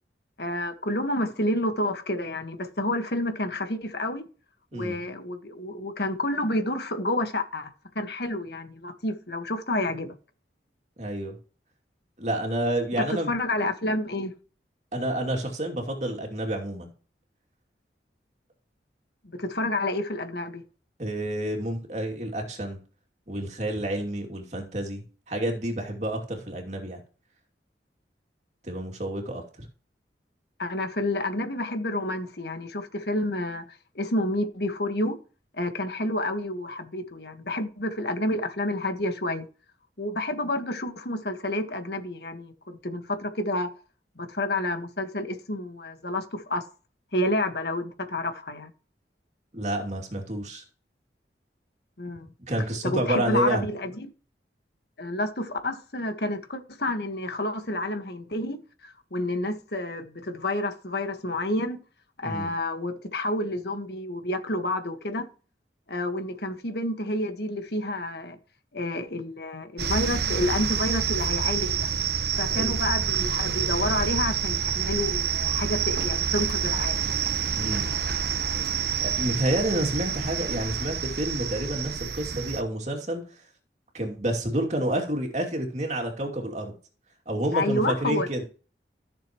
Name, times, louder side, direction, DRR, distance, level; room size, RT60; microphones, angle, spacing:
voice 1, 0.4-4.3 4.7-10.1 13.0-14.3 19.3-20.6 30.6-33.6 33.9-35.2 35.5-39.4 40.0-43.7 44.2-46.6 47.1-48.7 52.0-52.3 52.8-54.1 55.0-61.8 62.2-65.3 65.9-68.4 68.7-71.9 72.4-77.0 87.5-88.3, left 1 dB, 65° left, 1.6 m, -29 dB
voice 2, 11.0-11.4 12.2-13.4 14.9-16.9 21.0-22.8 23.3-27.0 28.6-29.7 49.5-50.6 52.5-53.7 62.2-62.5 72.5-72.7 77.5-77.9 79.0-83.2 83.9-86.7 87.3-88.4, right 1 dB, 40° right, 2.6 m, -29 dB
sound 1, 69.8-82.6, right 7 dB, 65° right, 1.1 m, -28 dB
14.5 x 6.9 x 3.1 m
head